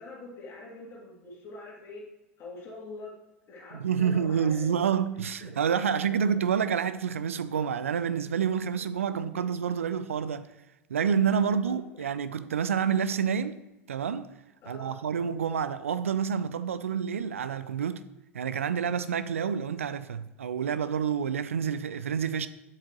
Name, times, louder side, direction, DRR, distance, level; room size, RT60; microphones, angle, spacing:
voice 1, 0.0-2.0 2.4-3.1 3.5-4.8 5.4-5.5 5.9-6.4 9.3-9.4 11.4-12.0 14.6-15.0, left 2 dB, 35° left, 2.8 m, -44 dB
voice 2, 3.7-10.5 10.9-13.6 13.9-14.3 14.7-18.0 18.3-22.5, right 7 dB, 75° right, 0.5 m, -28 dB
8.7 x 7.8 x 3.0 m
figure-of-eight pair, 80°, 7 cm